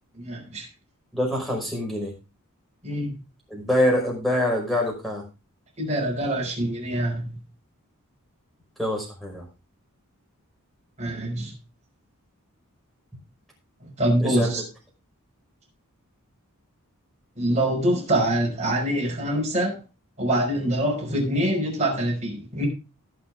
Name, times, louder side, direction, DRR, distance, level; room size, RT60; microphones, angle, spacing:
voice 1, 0.1-0.7 2.8-3.2 5.8-7.3 11.0-11.5 14.0-14.6 17.4-19.8 20.2-22.7, right 1 dB, 30° right, 5.5 m, -25 dB
voice 2, 1.1-2.1 3.5-5.2 8.8-9.4 14.2-14.6, left 1 dB, ahead, 5.5 m, -25 dB
19.0 x 6.5 x 3.6 m
head